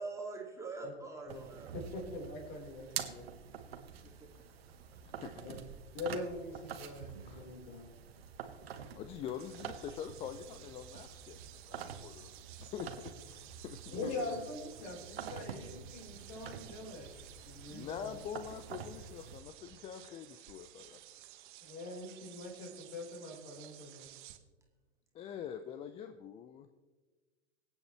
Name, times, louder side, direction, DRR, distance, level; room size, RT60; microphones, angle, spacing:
voice 1, 0.0-1.8 4.0-4.3, right 3 dB, 10° right, -1 dB, 2.2 m, -44 dB
sound 1, 1.3-19.4, right 7 dB, 65° right, 1.4 m, -47 dB
voice 2, 1.7-3.3 5.4-5.6 5.9-7.8 13.9-18.2 21.6-24.1, left 2 dB, 45° left, 1 dB, 4.2 m, -43 dB
voice 3, 5.2-5.6 7.2-7.5 8.9-11.4 11.7-12.3 12.6-14.4 17.7-21.0 25.1-26.7, left 9 dB, 20° left, 9 dB, 0.5 m, -45 dB
sound 2, 9.3-24.4, right 13 dB, 45° right, 1.1 m, -55 dB
24.5 x 8.6 x 3.2 m, 1.3 s
figure-of-eight pair, 105°, 33 cm